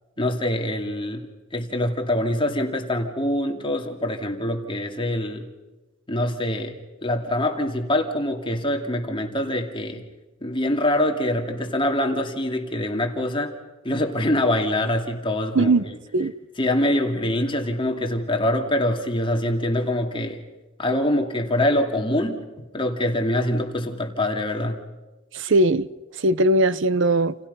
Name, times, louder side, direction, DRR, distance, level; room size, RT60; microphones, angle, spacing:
voice 1, 0.2-1.3 1.5-5.5 6.1-10.0 10.4-13.5 13.8-15.7 16.6-20.4 20.8-24.8, left 1 dB, 25° left, 2.5 m, -24 dB
voice 2, 25.3-25.9 26.2-27.4, right 2 dB, 65° right, 0.8 m, -19 dB
29.0 x 29.0 x 5.5 m
head